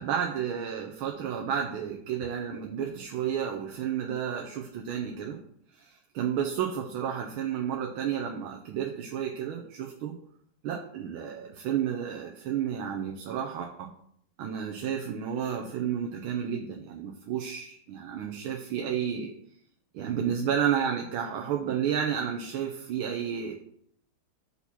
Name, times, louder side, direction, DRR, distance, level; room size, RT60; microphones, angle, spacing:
voice 1, 0.0-5.4 5.7-10.2 10.6-13.9 14.4-19.3 19.9-23.5, right 8 dB, 80° right, 2 dB, 1.5 m, -31 dB
5.6 x 4.2 x 5.9 m, 0.67 s
omnidirectional pair, 2.3 m